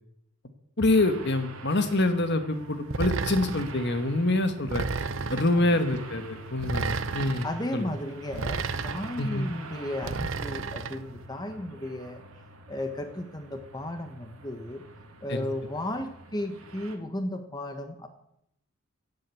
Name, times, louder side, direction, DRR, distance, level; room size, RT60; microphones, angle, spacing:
voice 1, 0.8-4.9 5.3-7.5 7.7-7.8 9.2-9.5 15.3-15.4, left 2 dB, 55° left, 9 dB, 1.4 m, -26 dB
sound 1, 0.9-17.0, right 2 dB, 85° right, 2.3 m, -46 dB
sound 2, 2.9-3.8 4.7-5.6 6.6-7.5 8.3-9.2 10.0-11.0, right 4 dB, 60° right, 0.8 m, -32 dB
voice 2, 5.5-5.8 7.4-12.2 12.7-14.8 15.2-18.1, left 1 dB, 20° left, 7 dB, 1.2 m, -34 dB
16.5 x 7.9 x 8.3 m, 0.79 s
head